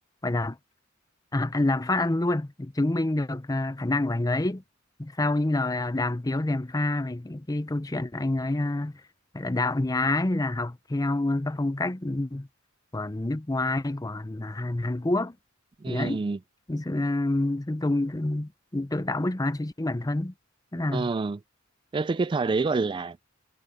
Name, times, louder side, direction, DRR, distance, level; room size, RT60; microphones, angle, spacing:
voice 1, 0.2-0.6 1.3-4.6 5.0-8.9 9.3-12.5 12.9-15.4 15.9-16.2 16.7-20.3 20.7-21.1, left 2 dB, 20° left, 0.6 m, -27 dB
voice 2, 15.8-16.4 20.9-21.4 21.9-23.4, right 4 dB, 25° right, 0.3 m, -27 dB
head